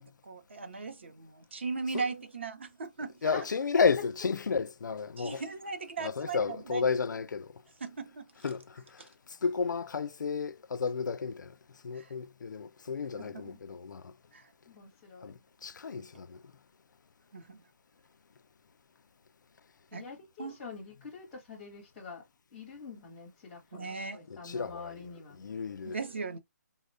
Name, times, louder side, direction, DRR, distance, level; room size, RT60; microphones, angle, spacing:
voice 1, 0.0-3.3 5.2-6.8 7.8-8.3 9.0-9.1 11.9-12.1 13.2-13.4 14.3-14.5 17.3-17.6 19.9-20.1 20.4-20.6 23.7-24.3 25.8-26.4, right 4 dB, 40° right, 0.6 m, -38 dB
voice 2, 3.2-5.4 6.0-7.5 8.4-9.1 9.4-11.5 11.8-14.1 15.2-16.4 24.3-26.0, left 5 dB, 85° left, 0.4 m, -32 dB
voice 3, 14.6-15.3 19.9-22.2 22.5-25.4, left 4 dB, 5° left, 0.7 m, -46 dB
3.8 x 2.1 x 2.5 m
hypercardioid pair, 180°, 10 cm